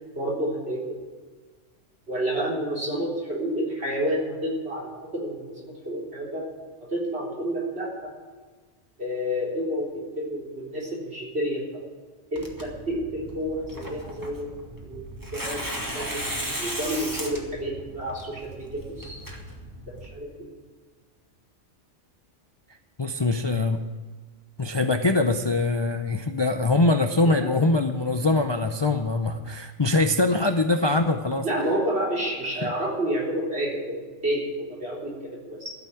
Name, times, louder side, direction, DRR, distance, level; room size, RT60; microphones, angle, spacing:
voice 1, 0.1-0.8 2.1-6.4 6.8-8.1 9.0-11.8 12.3-14.5 14.8-16.3 16.6-19.2 19.9-20.5 27.2-27.5 31.4-35.7, equal, 60° right, -4 dB, 4.1 m, -30 dB
Tearing, 12.4-20.1, right 1 dB, 15° right, 1.9 m, -36 dB
voice 2, 23.0-23.8 24.6-31.4 32.6-32.7, left 2 dB, 30° left, 6 dB, 0.5 m, -23 dB
13.5 x 7.2 x 9.3 m, 1.4 s
omnidirectional pair, 1.2 m